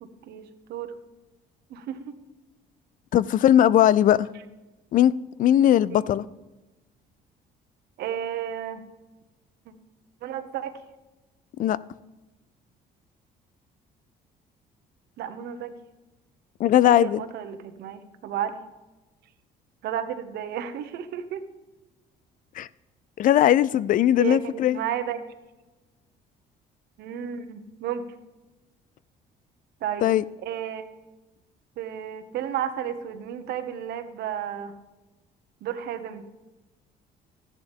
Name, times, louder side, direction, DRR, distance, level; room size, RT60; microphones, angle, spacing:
voice 1, 0.0-0.9 1.7-2.1 5.9-6.0 8.0-8.8 10.2-10.8 15.2-15.7 16.9-18.6 19.8-21.4 24.2-25.2 27.0-28.0 29.8-30.9 31.8-34.7 35.6-36.2, right 9 dB, 75° right, 1.1 m, -32 dB
voice 2, 3.1-4.3 4.9-5.1 5.4-6.2 11.6-11.8 16.6-17.2 22.6-22.7 23.2-24.8 30.0-30.2, left 11 dB, 55° left, 0.4 m, -19 dB
13.5 x 11.0 x 3.6 m
cardioid pair, 110°, 17 cm